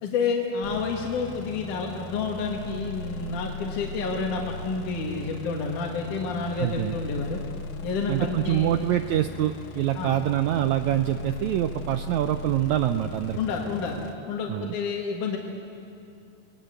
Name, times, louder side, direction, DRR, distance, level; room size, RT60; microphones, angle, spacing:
voice 1, 0.0-7.4 7.8-8.8 10.0-10.1 13.3-14.0 14.3-15.4, left 4 dB, 70° left, 0 dB, 3.3 m, -29 dB
sound 1, 0.6-14.1, left 3 dB, 85° left, 2.9 m, -38 dB
voice 2, 6.6-7.0 8.1-13.4 14.5-14.7, right 12 dB, 75° right, 8 dB, 1.8 m, -25 dB
29.0 x 20.0 x 8.2 m, 2.6 s
omnidirectional pair, 3.8 m